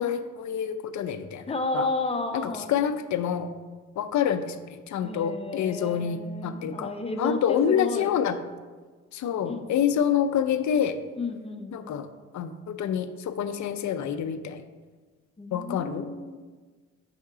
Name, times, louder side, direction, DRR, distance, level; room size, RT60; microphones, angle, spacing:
voice 1, 0.0-1.4 1.7-1.9 2.3-3.5 4.0-4.6 4.9-6.9 7.2-8.4 9.1-11.0 11.7-12.1 12.3-14.6 15.5-16.1, left 8 dB, 65° left, 10 dB, 0.5 m, -27 dB
voice 2, 1.5-2.7 5.0-8.1 9.4-9.6 11.2-11.8 15.4-16.4, left 3 dB, 20° left, 5 dB, 0.7 m, -32 dB
5.5 x 3.6 x 4.8 m, 1.4 s
cardioid pair, 70°, 32 cm